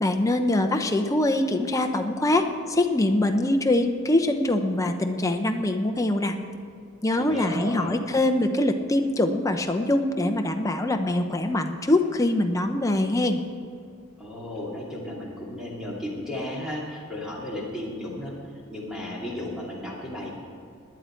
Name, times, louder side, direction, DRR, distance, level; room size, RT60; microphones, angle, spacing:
voice 1, 0.0-6.3 7.0-13.4, left 1 dB, 15° left, 5 dB, 0.7 m, -23 dB
voice 2, 7.2-7.9 14.2-18.3 18.7-20.3, left 1 dB, 5° right, -5 dB, 2.5 m, -34 dB
18.5 x 10.5 x 4.5 m, 2.3 s
head